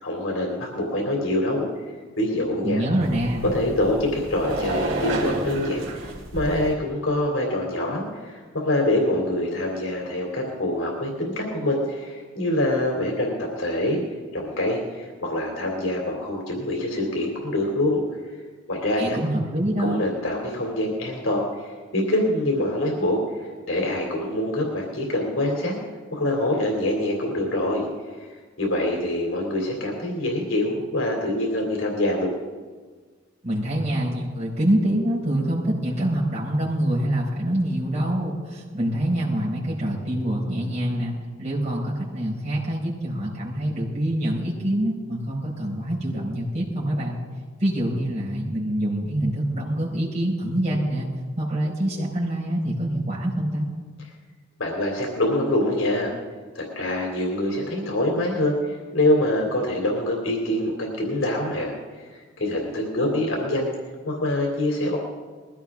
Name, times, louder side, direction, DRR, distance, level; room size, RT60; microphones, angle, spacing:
voice 1, 0.0-1.7 2.2-2.8 3.5-14.0 14.3-18.0 18.7-19.2 19.8-25.7 26.1-27.9 28.1-28.3 28.6-32.3 54.6-56.1 56.5-61.7 62.1-63.7 64.0-65.0, left 1 dB, 85° left, 0 dB, 3.1 m, -25 dB
voice 2, 2.6-3.5 19.0-20.0 33.4-47.2 47.6-51.1 51.3-53.7, right 1 dB, 35° right, -6 dB, 5.2 m, -25 dB
sound 1, 3.0-6.7, right 2 dB, 80° right, 3.1 m, -30 dB
21.0 x 16.0 x 3.7 m, 1.4 s
head